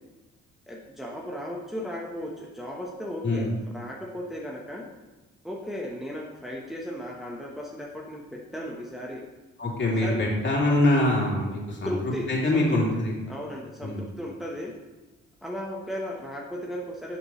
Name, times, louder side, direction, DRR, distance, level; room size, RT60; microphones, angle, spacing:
voice 1, 0.7-3.5 3.7-4.9 5.4-9.2 10.0-10.3 11.8-12.8 13.3-14.7 15.4-17.2, equal, ahead, -3 dB, 1.1 m, -35 dB
voice 2, 9.6-12.0 12.3-13.2 13.8-14.1, left 1 dB, 40° left, -3 dB, 2.9 m, -24 dB
11.5 x 6.2 x 3.2 m, 1.1 s
cardioid pair, 90°, 30 cm